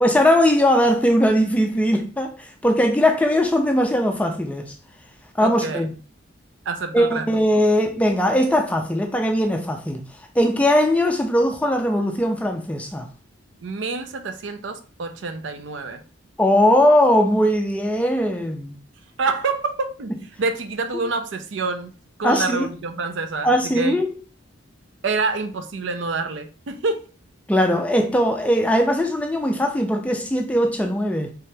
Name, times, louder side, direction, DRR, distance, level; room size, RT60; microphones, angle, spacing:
voice 1, 0.0-4.7 5.4-5.9 6.9-10.0 10.4-13.1 16.4-18.8 20.9-21.0 22.2-22.7 23.4-24.1 27.5-31.3, equal, 5° left, 0.3 m, -19 dB
voice 2, 5.4-5.8 6.7-7.2 13.6-16.0 19.2-20.1 20.4-21.9 22.2-24.0 25.0-27.1, right 3 dB, 70° right, 0.5 m, -27 dB
3.4 x 2.8 x 3.3 m
head